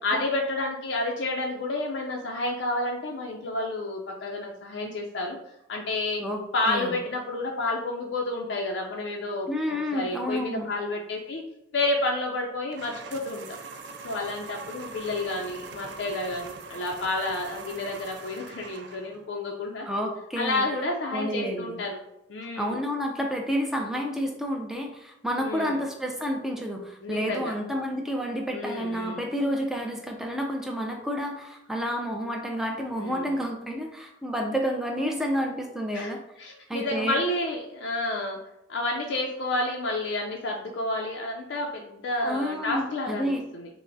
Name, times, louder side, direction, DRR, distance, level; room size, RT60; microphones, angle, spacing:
voice 1, 0.0-5.4 5.7-6.2 6.5-9.5 9.9-11.4 11.7-13.6 14.0-19.9 20.4-22.0 22.3-22.7 25.4-25.7 27.0-27.6 28.5-29.3 33.0-33.3 35.9-38.4 38.7-43.7, left 2 dB, 70° left, 0 dB, 0.4 m, -30 dB
voice 2, 6.2-6.9 9.5-10.7 19.9-20.6 21.1-21.8 22.6-36.2 36.7-37.2 42.2-43.4, equal, ahead, 1 dB, 0.4 m, -30 dB
sound 1, 12.7-19.3, right 4 dB, 70° right, 0.4 m, -42 dB
5.6 x 2.0 x 2.6 m, 0.85 s
head